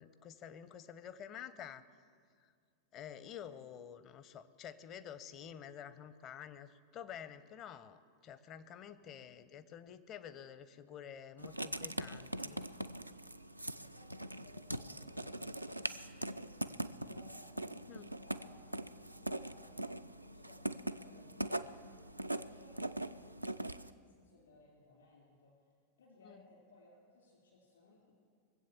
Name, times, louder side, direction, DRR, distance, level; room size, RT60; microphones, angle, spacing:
voice 1, 0.0-1.9 2.4-2.5 2.9-12.6 17.9-18.1 26.2-26.4, left 9 dB, 35° left, 14 dB, 0.7 m, -50 dB
voice 2, 8.8-9.2 13.6-19.7 20.2-22.0 22.4-25.5 26.0-28.1, left 2 dB, 70° left, -3 dB, 3.8 m, -62 dB
Writing, 11.4-23.9, right 1 dB, 85° right, 0.4 m, -42 dB
22.0 x 7.9 x 7.2 m, 2.1 s
figure-of-eight pair, 90°, 0 cm